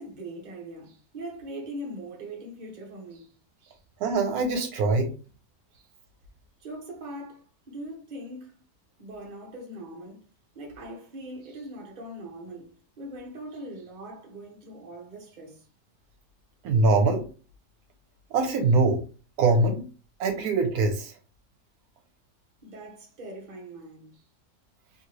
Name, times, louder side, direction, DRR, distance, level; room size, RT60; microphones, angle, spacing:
voice 1, 0.0-3.3 3.6-3.8 5.7-5.9 6.6-8.6 9.0-10.2 10.5-15.6 22.6-24.2, right 1 dB, 35° right, 0.9 m, -41 dB
voice 2, 4.0-5.1 16.6-17.2 18.3-19.0 19.4-19.8 20.2-21.1, right 3 dB, 75° right, 1.1 m, -23 dB
2.7 x 2.6 x 3.0 m
omnidirectional pair, 1.6 m